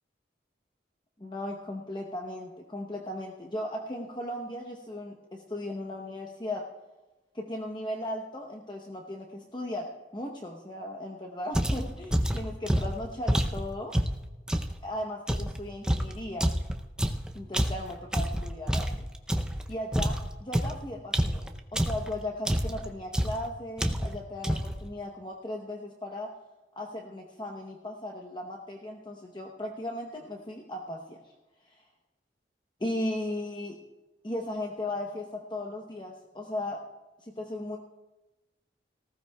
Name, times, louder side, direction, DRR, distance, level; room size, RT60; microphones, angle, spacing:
voice 1, 1.2-6.6 7.3-13.9 14.8-16.5 17.3-19.1 19.7-26.3 26.8-31.3 31.6-31.8 32.8-33.8 34.2-36.8 37.2-37.8, left 1 dB, 25° left, 1 dB, 0.8 m, -37 dB
sound 1, 11.5-14.8 15.3-19.6 19.9-22.1 22.5-22.9 23.1-23.5 23.8-24.2 24.4-24.8, equal, 5° right, 0.5 m, -28 dB
18.5 x 15.5 x 2.3 m, 1.1 s
head